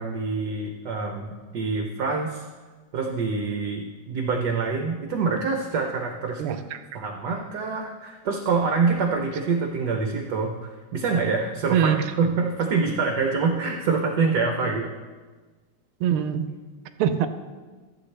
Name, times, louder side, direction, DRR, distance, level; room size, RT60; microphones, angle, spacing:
voice 1, 0.0-2.4 2.9-6.6 6.9-11.9 12.2-14.9, right 4 dB, 60° right, 2 dB, 1.3 m, -26 dB
voice 2, 6.4-6.8 11.7-12.1 16.0-16.5 17.0-17.3, right 8 dB, 85° right, 10 dB, 1.5 m, -23 dB
14.5 x 8.3 x 3.3 m, 1.3 s
omnidirectional pair, 2.3 m